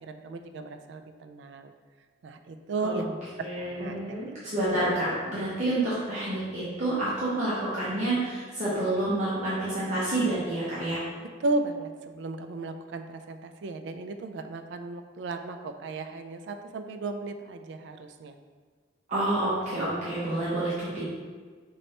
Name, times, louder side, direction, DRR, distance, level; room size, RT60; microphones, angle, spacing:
voice 1, 0.0-1.7 2.2-4.3 11.4-18.3, right 3 dB, 65° right, 8 dB, 0.3 m, -35 dB
voice 2, 3.4-11.0 19.1-21.0, right 1 dB, 40° right, -10 dB, 0.9 m, -28 dB
5.2 x 3.2 x 2.9 m, 1.5 s
head